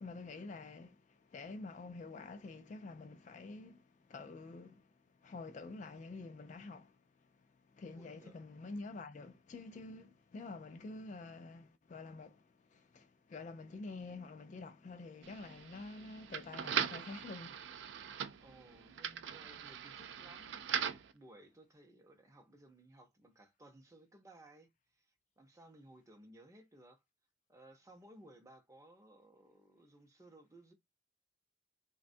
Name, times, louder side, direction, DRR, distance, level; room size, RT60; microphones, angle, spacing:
voice 1, 0.0-4.9 5.2-7.0 7.7-17.7, left 3 dB, 40° left, 0.3 m, -48 dB
voice 2, 8.0-8.4 18.4-27.0 27.5-30.7, right 1 dB, 15° right, 0.6 m, -60 dB
sound 1, 15.2-21.1, right 8 dB, 65° right, 0.3 m, -40 dB
3.4 x 2.2 x 2.5 m
head